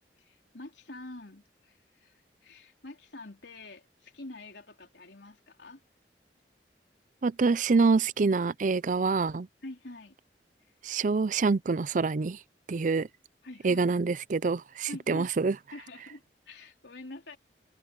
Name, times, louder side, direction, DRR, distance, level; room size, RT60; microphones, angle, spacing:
voice 1, 0.2-5.8 9.6-10.2 10.6-10.8 13.4-13.9 14.9-15.3 15.7-17.4, left 2 dB, 90° left, 3.6 m, -46 dB
voice 2, 7.2-9.5 10.8-12.4 12.7-13.1 13.6-15.5, right 4 dB, 45° right, 0.5 m, -26 dB
head